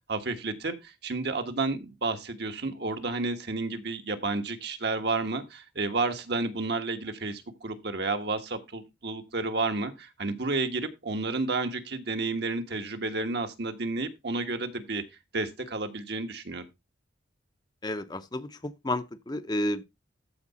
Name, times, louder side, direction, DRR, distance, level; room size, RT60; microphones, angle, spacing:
voice 1, 0.1-15.0 15.3-16.7, right 3 dB, 60° right, 1.3 m, -31 dB
voice 2, 17.8-19.8, left 1 dB, 20° left, 0.7 m, -31 dB
13.5 x 4.7 x 4.1 m
head